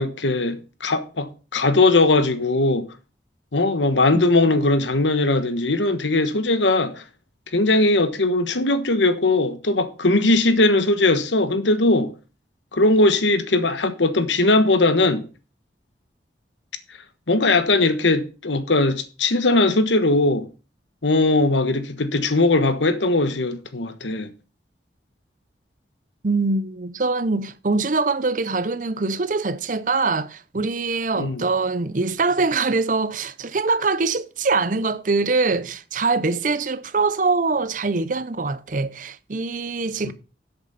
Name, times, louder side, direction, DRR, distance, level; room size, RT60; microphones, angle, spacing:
voice 1, 0.0-2.9 3.5-7.0 7.5-12.1 12.7-15.2 17.3-20.5 21.0-24.3 31.2-31.4 40.0-40.1, left 2 dB, 90° left, 1.3 m, -19 dB
voice 2, 4.1-4.6 26.2-40.1, right 3 dB, 45° right, 0.7 m, -23 dB
13.0 x 8.0 x 4.2 m
head